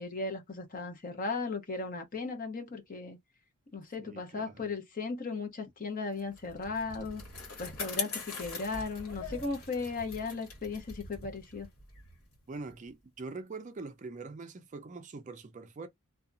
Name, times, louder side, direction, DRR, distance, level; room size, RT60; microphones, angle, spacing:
voice 1, 0.0-3.2 3.7-7.2 7.6-11.7, left 3 dB, 40° left, 0.8 m, -36 dB
voice 2, 4.0-4.6 12.5-15.9, right 3 dB, 35° right, 0.4 m, -43 dB
Bicycle, 6.2-12.9, left 4 dB, 75° left, 1.3 m, -42 dB
2.8 x 2.3 x 2.5 m
head